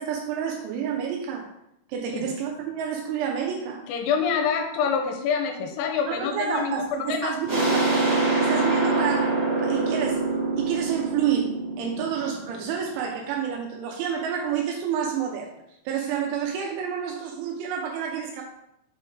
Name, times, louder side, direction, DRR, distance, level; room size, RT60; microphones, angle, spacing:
voice 1, 0.0-1.5 1.9-3.8 6.1-7.9 8.4-10.3 10.5-15.5 15.9-18.4, right 8 dB, 80° right, 1 dB, 2.9 m, -29 dB
voice 2, 3.9-7.3, left 6 dB, 80° left, 4 dB, 3.1 m, -26 dB
sound 1, 7.5-13.0, right 3 dB, 45° right, 1.8 m, -25 dB
7.0 x 3.5 x 4.5 m, 0.81 s
omnidirectional pair, 5.7 m